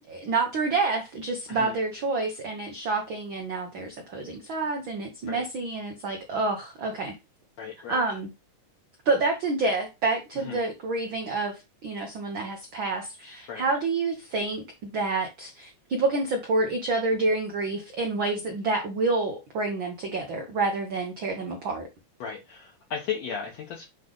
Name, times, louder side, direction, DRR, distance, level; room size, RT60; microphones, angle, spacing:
voice 1, 0.1-7.2 7.9-8.3 9.0-21.9, right 3 dB, 75° right, 1.1 m, -28 dB
voice 2, 7.6-8.0 10.4-10.6 13.5-13.6 22.2-23.9, left 7 dB, 65° left, 2.1 m, -35 dB
7.7 x 3.3 x 3.9 m
omnidirectional pair, 3.8 m